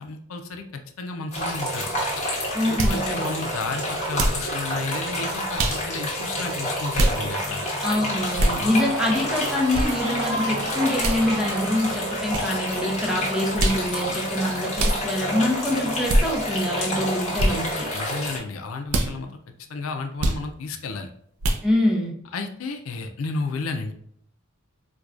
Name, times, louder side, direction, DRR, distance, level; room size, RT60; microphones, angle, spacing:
voice 1, 0.0-1.9 2.7-7.6 8.6-8.7 17.9-21.1 22.3-23.9, left 3 dB, 85° left, 5 dB, 0.5 m, -32 dB
sound 1, 1.3-18.4, equal, 35° left, 1.1 m, -29 dB
voice 2, 2.5-3.2 7.8-17.9 21.6-22.1, left 1 dB, 5° right, -1 dB, 0.7 m, -25 dB
sound 2, 2.8-3.0 4.1-4.4 5.6-5.8 6.9-7.2 8.4-8.6 9.7-9.9 11.0-11.2 12.3-12.5 13.6-13.8 14.8-15.0 16.1-16.2 17.4-17.5 18.9-19.1 20.2-20.4 21.4-21.6, right 1 dB, 85° right, 0.5 m, -22 dB
Cheering / Crowd, 3.4-17.8, right 2 dB, 60° right, 0.9 m, -39 dB
4.5 x 2.2 x 2.5 m, 0.67 s
head